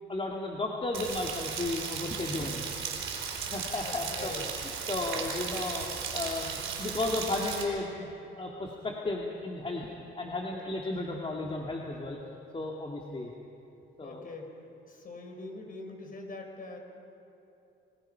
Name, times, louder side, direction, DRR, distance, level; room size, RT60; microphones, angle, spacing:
voice 1, 0.1-2.6 3.5-4.3 4.9-5.9 6.1-8.1 8.4-9.9 10.2-12.2 12.5-13.3 14.0-14.2, left 2 dB, 30° left, -1 dB, 2.4 m, -34 dB
Rain, 0.9-7.6, right 6 dB, 80° right, 4.5 m, -36 dB
voice 2, 3.8-4.9 13.2-13.3 14.0-16.8, left 3 dB, 45° left, 2 dB, 5.3 m, -44 dB
28.5 x 19.5 x 5.8 m, 2.9 s
cardioid pair, 90°, 20 cm